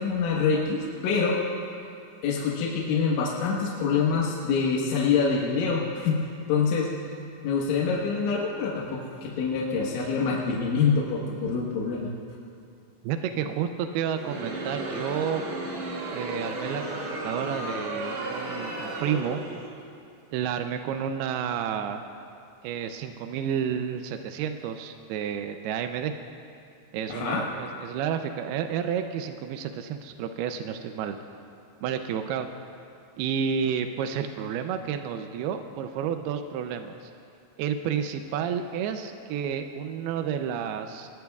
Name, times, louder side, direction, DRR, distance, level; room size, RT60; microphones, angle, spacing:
voice 1, 0.0-1.4 2.2-6.2 6.5-6.9 7.4-12.1 27.1-27.4, left 5 dB, 85° left, -3 dB, 3.7 m, -25 dB
voice 2, 13.0-15.4 16.1-19.4 20.3-22.0 22.6-26.1 26.9-31.2 31.8-32.5 33.2-37.1 37.6-41.1, right 8 dB, 85° right, 7 dB, 2.2 m, -30 dB
Crowd, 14.0-19.8, right 1 dB, 50° right, 2.7 m, -34 dB
24.5 x 21.5 x 2.4 m, 2.5 s
omnidirectional pair, 5.3 m